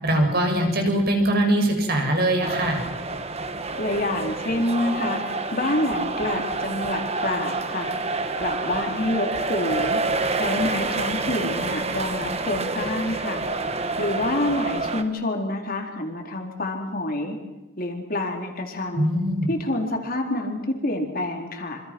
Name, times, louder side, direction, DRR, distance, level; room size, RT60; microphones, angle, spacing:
voice 1, 0.0-2.8 19.0-19.5, right 1 dB, 50° right, 3 dB, 6.8 m, -22 dB
sound 1, 2.4-15.0, right 3 dB, 30° right, 1.7 m, -28 dB
voice 2, 3.8-7.9 8.4-10.0 10.3-13.4 14.0-17.4 17.8-19.1 19.5-21.8, left 1 dB, 45° left, 2 dB, 4.1 m, -27 dB
27.5 x 26.5 x 6.2 m, 1.1 s
head